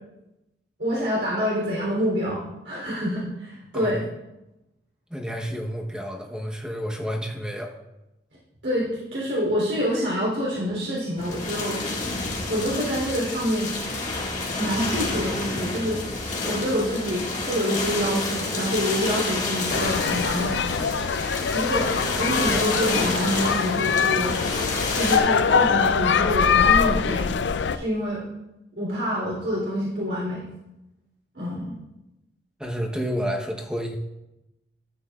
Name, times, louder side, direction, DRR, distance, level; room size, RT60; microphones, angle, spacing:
voice 1, 0.8-4.1 8.6-11.8 12.5-13.8 14.6-16.0 16.4-20.7 21.5-21.9 22.2-24.4 24.9-27.3 27.7-28.2 28.8-30.4 31.3-31.8, equal, 90° right, -6 dB, 3.4 m, -26 dB
voice 2, 5.1-7.7 32.6-34.0, equal, 5° right, 0 dB, 1.0 m, -30 dB
sound 1, 11.2-25.2, left 3 dB, 45° left, 1.9 m, -29 dB
sound 2, 19.7-27.8, left 6 dB, 85° left, 0.4 m, -23 dB
13.5 x 8.8 x 2.4 m, 0.93 s
head